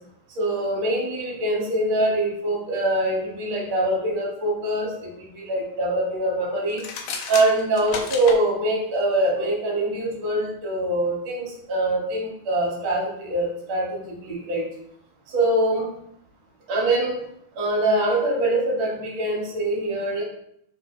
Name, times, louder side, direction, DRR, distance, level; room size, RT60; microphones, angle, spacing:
voice 1, 0.3-6.8 7.3-14.7 15.3-15.9 16.7-17.2 17.5-20.2, right 1 dB, 55° right, -4 dB, 1.4 m, -24 dB
sound 1, 6.7-8.4, left 5 dB, 80° left, 1.9 m, -32 dB
4.4 x 3.8 x 2.3 m, 0.72 s
omnidirectional pair, 3.8 m